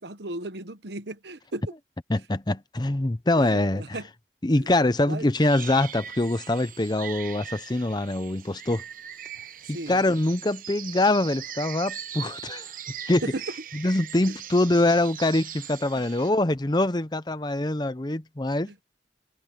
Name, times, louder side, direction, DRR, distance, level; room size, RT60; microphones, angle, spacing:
voice 1, 0.0-1.6 3.4-4.1 4.6-4.7 5.1-5.3 9.7-10.0 13.3-13.4 18.7-18.8, right 2 dB, 70° right, 1.2 m, -36 dB
voice 2, 2.1-4.0 4.4-8.8 9.7-12.7 13.1-13.3 13.7-18.8, left 2 dB, 25° left, 0.7 m, -24 dB
sound 1, 5.4-16.3, right 9 dB, 50° right, 1.0 m, -40 dB
head